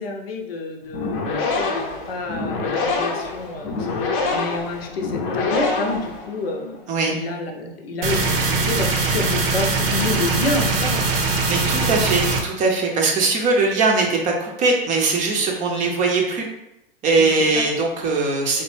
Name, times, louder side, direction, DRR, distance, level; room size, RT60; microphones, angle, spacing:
voice 1, 0.0-11.0 17.2-17.3, left 2 dB, 80° left, 2 dB, 0.7 m, -29 dB
sound 1, 0.9-6.6, left 3 dB, 40° left, 0.6 m, -26 dB
sound 2, 8.0-12.4, right 3 dB, 65° right, 0.7 m, -21 dB
voice 2, 11.5-16.5 17.0-18.6, right 3 dB, 25° right, 1 dB, 0.5 m, -20 dB
3.1 x 2.1 x 3.1 m, 0.86 s
hypercardioid pair, 105°, 30 cm